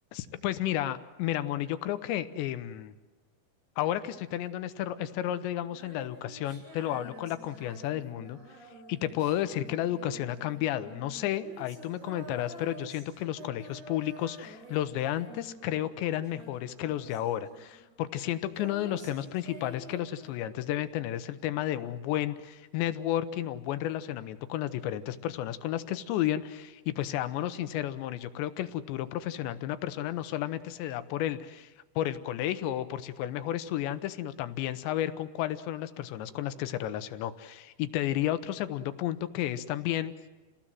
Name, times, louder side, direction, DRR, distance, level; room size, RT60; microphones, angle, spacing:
voice 1, 0.1-2.9 3.8-8.4 8.9-31.7 32.0-40.1, left 12 dB, 80° left, 12 dB, 3.2 m, -32 dB
Female singing, 5.6-16.0 16.2-20.7, right 1 dB, 80° right, 9.6 m, -49 dB
29.5 x 19.0 x 7.6 m, 1.2 s
omnidirectional pair, 5.2 m